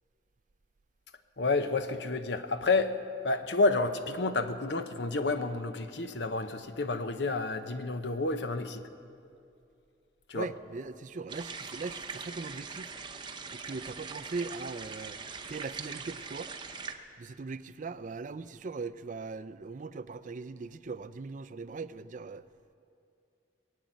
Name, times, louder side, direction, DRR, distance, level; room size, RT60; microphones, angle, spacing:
voice 1, 1.4-2.9 3.2-8.8 10.3-10.5, left 3 dB, 70° left, 0.8 m, -30 dB
voice 2, 10.3-12.9 13.5-15.2 15.5-16.5 17.2-22.5, right 4 dB, 45° right, 0.4 m, -40 dB
sound 1, 11.3-16.9, right 5 dB, 25° right, 0.8 m, -42 dB
20.5 x 7.6 x 9.2 m
head